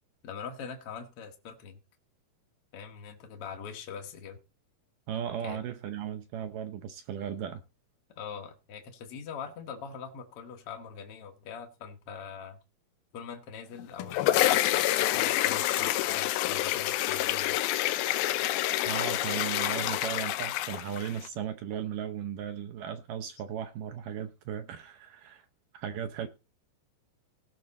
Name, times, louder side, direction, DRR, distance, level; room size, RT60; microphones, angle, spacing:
voice 1, 0.2-1.8 2.7-4.4 5.4-5.6 8.2-12.6 13.1-17.6, left 6 dB, 60° left, 1.6 m, -42 dB
voice 2, 5.1-7.6 18.9-25.5 25.7-26.3, right 9 dB, 75° right, 2.1 m, -36 dB
sound 1, 13.8-21.3, left 14 dB, 80° left, 2.5 m, -28 dB
18.0 x 6.2 x 4.1 m
omnidirectional pair, 4.4 m